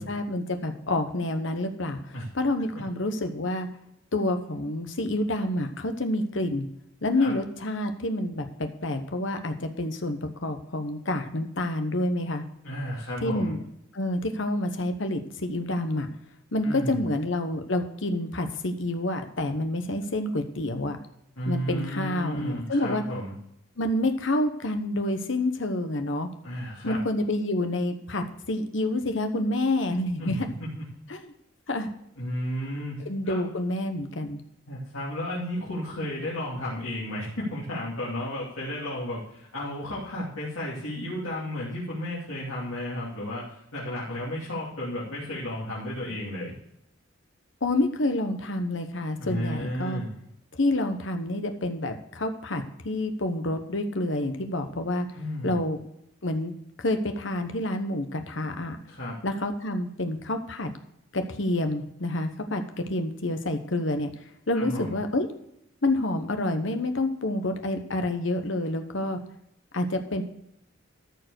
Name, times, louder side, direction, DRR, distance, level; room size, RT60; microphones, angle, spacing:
voice 1, 0.0-3.7 4.1-6.7 7.0-12.4 13.2-13.6 13.9-16.1 16.5-21.0 21.5-23.0 23.8-26.3 26.8-30.5 31.1-31.3 31.7-31.9 33.1-34.4 47.6-50.0 50.5-55.1 55.4-55.8 56.2-56.5 56.8-58.8 59.2-60.7 61.1-62.6 62.9-64.1 64.5-65.3 65.8-69.2 69.7-70.2, left 1 dB, 65° left, 6 dB, 1.1 m, -28 dB
voice 2, 12.6-13.5 16.6-17.1 21.4-23.3 26.4-27.0 30.2-30.8 32.2-33.5 34.7-46.5 49.2-50.1 55.1-55.6 58.9-59.2 64.5-65.0, equal, 90° left, -7 dB, 2.8 m, -33 dB
13.5 x 4.7 x 6.4 m, 0.79 s
head